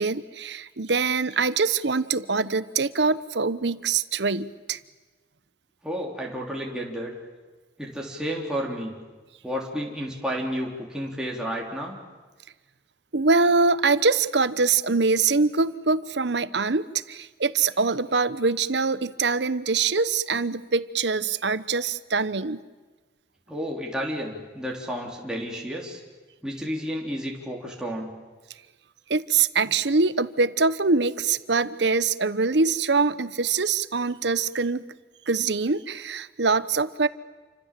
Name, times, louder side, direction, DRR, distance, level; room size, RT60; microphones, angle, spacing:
voice 1, 0.0-4.8 13.1-22.6 29.1-34.8 35.3-37.1, right 4 dB, 75° right, 15 dB, 1.0 m, -24 dB
voice 2, 5.8-7.1 7.8-8.9 9.4-12.0 23.5-26.0 26.4-28.1, equal, 5° right, -2 dB, 3.6 m, -31 dB
28.5 x 25.5 x 7.6 m, 1.3 s
head